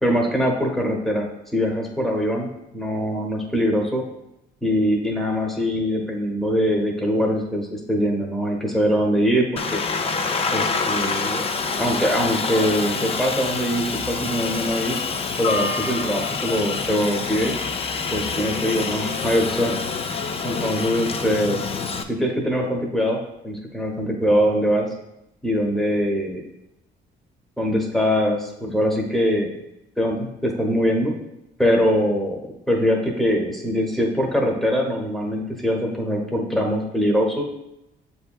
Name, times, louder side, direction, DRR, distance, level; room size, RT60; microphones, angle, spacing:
voice 1, 0.0-4.0 4.6-9.8 10.5-11.4 11.8-15.0 15.4-17.6 18.1-19.7 20.4-21.6 22.1-24.9 25.4-26.5 27.6-29.5 30.0-31.1 31.6-32.4 32.7-37.4, equal, ahead, 0 dB, 0.9 m, -22 dB
Aircraft, 9.6-22.0, left 4 dB, 30° left, 0.4 m, -26 dB
6.8 x 2.8 x 2.3 m, 0.85 s
cardioid pair, 90°, 20 cm